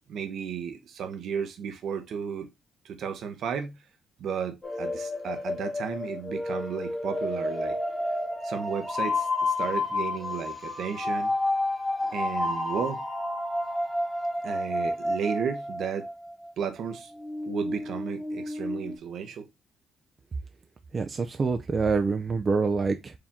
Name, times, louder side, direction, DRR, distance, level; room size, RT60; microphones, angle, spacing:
voice 1, 0.1-2.5 2.8-3.8 4.2-7.8 8.4-11.3 12.1-13.0 14.4-16.1 16.6-17.1 17.4-19.5, right 7 dB, 70° right, 0.9 m, -33 dB
sound 1, 4.6-16.5 16.8-19.0, left 2 dB, 15° left, 1.3 m, -30 dB
voice 2, 20.9-23.1, right 4 dB, 35° right, 0.4 m, -26 dB
4.8 x 2.8 x 3.5 m
cardioid pair, 90°, 0 cm